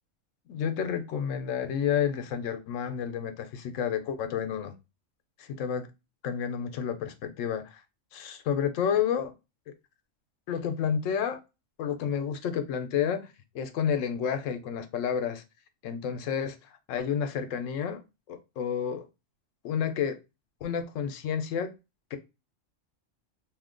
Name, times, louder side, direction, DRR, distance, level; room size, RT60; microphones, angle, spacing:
voice 1, 0.5-4.7 5.4-5.9 6.2-7.8 8.1-9.3 10.5-11.4 11.8-13.2 13.5-15.4 15.8-16.6 16.9-18.0 18.3-19.0 19.6-20.2 20.6-21.7 22.1-22.2, left 8 dB, 75° left, 0.9 m, -30 dB
2.6 x 2.1 x 3.6 m
omnidirectional pair, 1.3 m